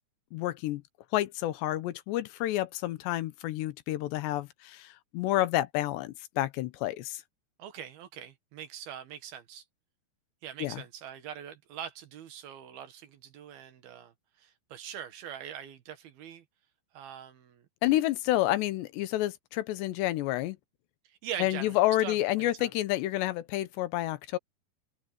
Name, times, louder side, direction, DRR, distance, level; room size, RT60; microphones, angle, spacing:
voice 1, 0.3-0.8 1.1-7.2 10.6-10.8 17.8-20.6 21.4-24.4, left 15 dB, 85° left, 3.2 m, -29 dB
voice 2, 7.6-9.6 10.4-16.4 16.9-17.7 21.0-22.7, right 9 dB, 65° right, 3.2 m, -43 dB
omnidirectional pair, 4.9 m